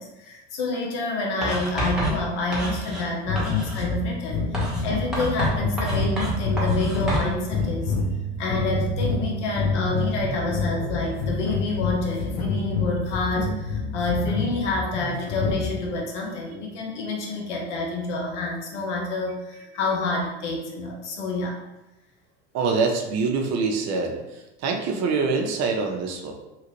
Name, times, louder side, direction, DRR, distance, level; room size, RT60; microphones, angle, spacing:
voice 1, 0.0-7.9 8.4-21.6, left 2 dB, 80° left, 0 dB, 0.8 m, -28 dB
Writing, 1.4-3.1 3.4-3.9 4.5-7.3, right 1 dB, ahead, 1.1 m, -28 dB
sound 1, 3.3-15.9, left 3 dB, 45° left, 0.8 m, -27 dB
voice 2, 22.5-24.2 24.6-26.3, right 4 dB, 50° right, 3 dB, 0.6 m, -24 dB
2.9 x 2.4 x 3.0 m, 1.0 s
hypercardioid pair, 85°, 35 cm